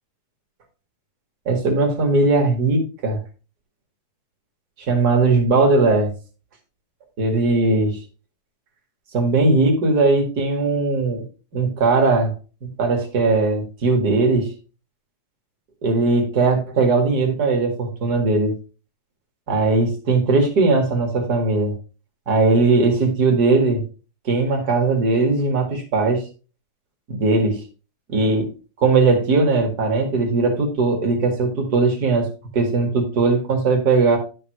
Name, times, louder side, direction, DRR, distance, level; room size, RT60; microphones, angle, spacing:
voice 1, 1.5-3.2 4.9-6.1 7.2-8.0 9.1-11.2 11.5-12.3 12.6-14.5 15.8-18.5 19.5-21.7 22.3-23.8 24.3-26.3 27.1-27.6 28.1-28.5 28.8-32.3 32.5-34.2, right 3 dB, 35° right, 3 dB, 2.0 m, -19 dB
10.5 x 6.5 x 3.1 m, 0.34 s
omnidirectional pair, 3.4 m